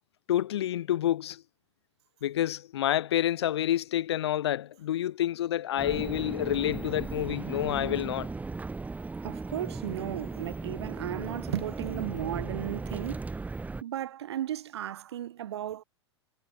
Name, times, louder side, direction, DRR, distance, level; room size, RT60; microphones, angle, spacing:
voice 1, 0.3-1.4 2.2-8.3, left 12 dB, 65° left, 2.0 m, -28 dB
sound 1, 5.8-13.8, right 3 dB, 10° right, 1.9 m, -37 dB
voice 2, 9.2-13.3 13.8-15.8, right 11 dB, 65° right, 6.2 m, -35 dB
figure-of-eight pair, 95°, 15 cm